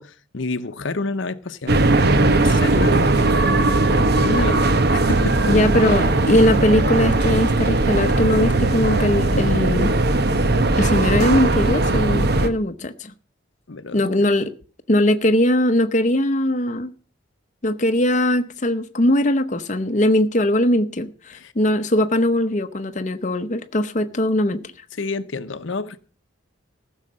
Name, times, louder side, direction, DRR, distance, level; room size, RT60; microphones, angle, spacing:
voice 1, 0.0-5.5 5.8-6.0 13.7-14.1 21.3-21.5 25.0-26.0, left 3 dB, 70° left, 0.8 m, -30 dB
sound 1, 1.7-12.5, right 2 dB, 50° right, 0.9 m, -18 dB
voice 2, 5.5-9.9 10.8-13.1 13.9-14.5 14.9-16.9 17.6-24.6, left 1 dB, 35° left, 0.8 m, -20 dB
15.0 x 6.5 x 7.6 m
head